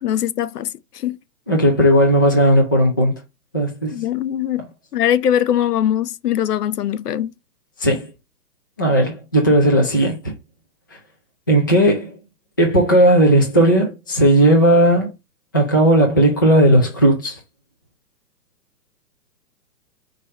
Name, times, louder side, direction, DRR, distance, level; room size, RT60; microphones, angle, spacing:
voice 1, 0.0-1.2 3.9-4.6 4.9-7.3, left 10 dB, 70° left, 0.8 m, -21 dB
voice 2, 1.5-3.1 3.5-4.0 7.8-8.1 8.8-10.3 11.5-12.2 12.6-15.1 15.5-17.4, right 1 dB, 15° left, 0.4 m, -15 dB
5.3 x 3.3 x 5.5 m
hypercardioid pair, 155°, 49 cm